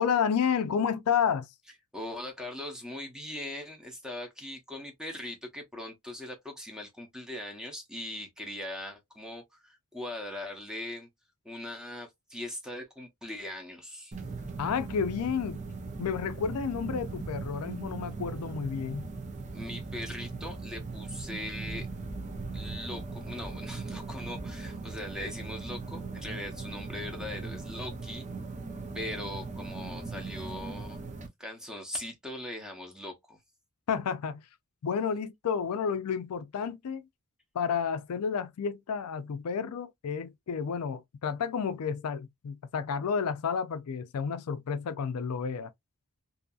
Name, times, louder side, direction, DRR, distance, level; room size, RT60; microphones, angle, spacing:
voice 1, 0.0-1.5 14.6-15.6 16.0-19.1 33.9-34.5 34.8-37.1 37.5-45.7, left 6 dB, 75° left, 0.4 m, -31 dB
voice 2, 1.9-11.1 11.4-14.1 19.5-21.9 22.5-28.3 28.9-31.0 31.4-33.4, left 1 dB, 5° right, 0.8 m, -40 dB
sound 1, 14.1-31.3, right 3 dB, 35° right, 0.6 m, -39 dB
2.7 x 2.6 x 2.3 m
head